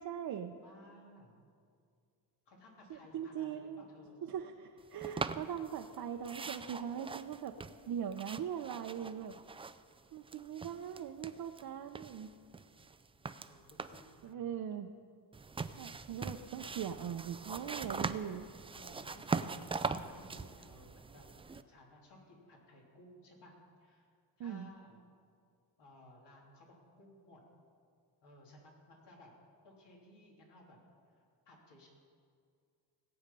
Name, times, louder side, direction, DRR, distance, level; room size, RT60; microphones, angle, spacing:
voice 1, 0.0-0.6 2.9-3.8 4.2-7.6 7.9-9.4 10.1-12.3 14.2-14.9 15.8-18.5 24.4-24.7, right 8 dB, 55° right, 4 dB, 0.7 m, -41 dB
voice 2, 0.6-1.4 2.5-4.3 10.6-10.8 12.4-14.6 18.7-21.2 21.5-23.5 23.8-24.1 24.4-25.0 25.8-27.4 28.2-29.3 29.6-30.8 31.1-31.9, left 1 dB, 75° left, -2 dB, 3.2 m, -59 dB
sound 1, 5.0-6.0 6.2-10.0 10.2-11.6 12.0-14.2 15.3-21.6, right 4 dB, 15° right, 0.3 m, -41 dB
18.5 x 8.0 x 5.4 m, 2.2 s
cardioid pair, 100°, 42 cm